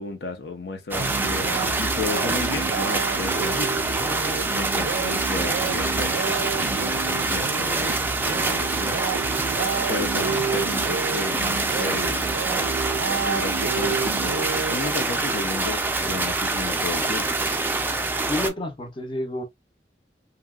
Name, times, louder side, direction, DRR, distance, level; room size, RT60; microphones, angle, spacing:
voice 1, 0.0-1.5 1.8-3.8 4.5-9.0 9.9-12.3 13.3-14.4 14.7-17.3, left 3 dB, 65° left, 0.6 m, -33 dB
sound 1, 0.9-18.5, right 3 dB, 10° right, 0.3 m, -25 dB
sound 2, 1.0-15.3, right 6 dB, 90° right, 0.3 m, -31 dB
voice 2, 10.1-10.5 18.3-19.4, left 1 dB, 30° left, 0.6 m, -30 dB
2.9 x 2.7 x 2.3 m
head